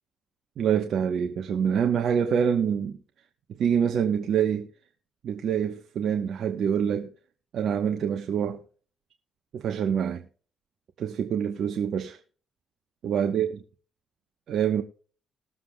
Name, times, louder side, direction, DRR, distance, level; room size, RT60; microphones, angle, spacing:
voice 1, 0.6-3.0 3.6-4.7 5.2-7.1 7.5-8.6 9.5-10.2 11.0-12.2 13.0-13.5 14.5-14.8, right 8 dB, 65° right, 1.0 m, -26 dB
19.5 x 7.5 x 2.2 m
cardioid pair, 90°, 0 cm